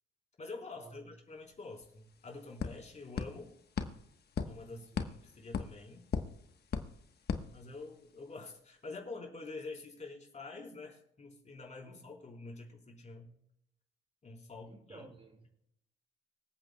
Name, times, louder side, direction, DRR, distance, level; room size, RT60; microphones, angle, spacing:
voice 1, 0.4-3.5 4.5-6.1 7.5-13.3 14.2-15.1, left 3 dB, 35° left, 4.0 m, -47 dB
sound 1, 1.5-1.6 1.8-8.2, left 6 dB, 55° left, 1.2 m, -40 dB
voice 2, 4.7-5.0 11.9-12.1 14.7-15.5, right 2 dB, 25° right, 2.1 m, -53 dB
25.5 x 8.6 x 2.3 m
cardioid pair, 90°, 20 cm